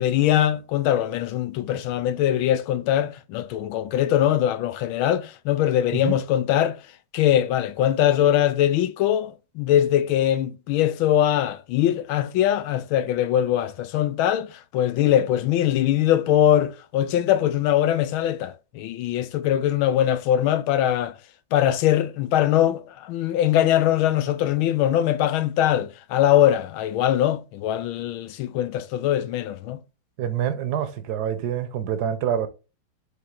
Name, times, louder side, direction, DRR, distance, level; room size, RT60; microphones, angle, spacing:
voice 1, 0.0-6.8 7.1-21.1 21.5-29.8, left 11 dB, 80° left, 1.4 m, -22 dB
voice 2, 30.2-32.5, right 9 dB, 60° right, 1.3 m, -26 dB
7.4 x 3.8 x 3.8 m
omnidirectional pair, 2.3 m